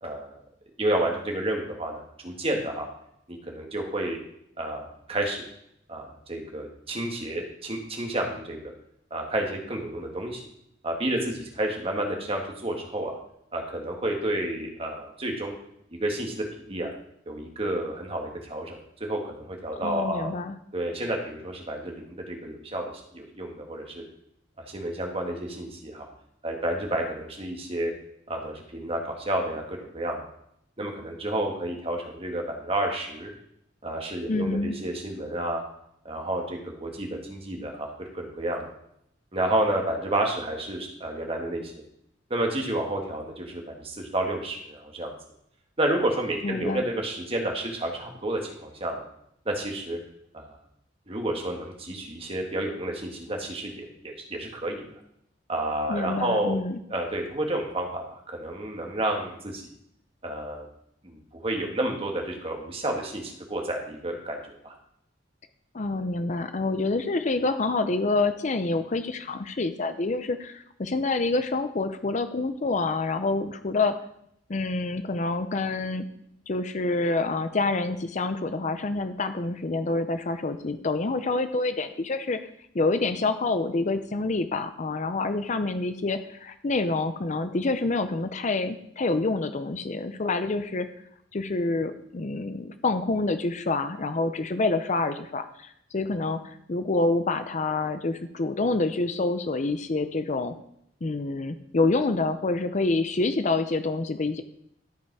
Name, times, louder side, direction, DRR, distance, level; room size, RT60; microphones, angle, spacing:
voice 1, 0.0-0.4 0.8-2.9 3.3-4.2 4.6-5.4 5.9-8.7 9.1-10.4 10.8-13.1 13.5-15.5 15.9-16.9 17.3-20.3 20.7-22.8 23.1-24.0 24.7-26.1 26.4-27.9 28.3-30.2 30.8-33.3 33.8-35.6 36.1-38.6 39.3-41.7 42.3-45.1 45.8-49.0 49.5-50.0 50.3-50.5 51.1-54.8 55.5-56.6 56.9-59.6 60.2-60.7 61.0-64.7, right 1 dB, 30° right, 2 dB, 1.8 m, -30 dB
voice 2, 19.8-20.5 34.3-34.8 46.4-46.8 55.9-56.8 65.7-74.0 74.5-76.1 76.5-82.4 82.7-90.9 91.3-100.5 101.0-104.4, left 3 dB, 40° left, 10 dB, 0.5 m, -27 dB
13.0 x 5.3 x 4.7 m, 0.73 s
head